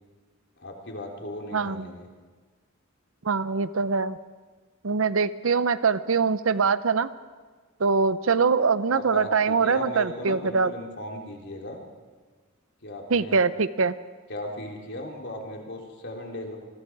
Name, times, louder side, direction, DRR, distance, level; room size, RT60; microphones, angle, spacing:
voice 1, 0.6-2.1 8.9-11.8 12.8-13.4 14.3-16.6, left 1 dB, 60° left, 0 dB, 3.6 m, -37 dB
voice 2, 1.5-1.9 3.2-4.2 4.8-7.1 7.8-10.7 13.1-13.9, right 5 dB, 70° right, 14 dB, 0.7 m, -23 dB
27.5 x 22.0 x 4.8 m, 1.4 s
head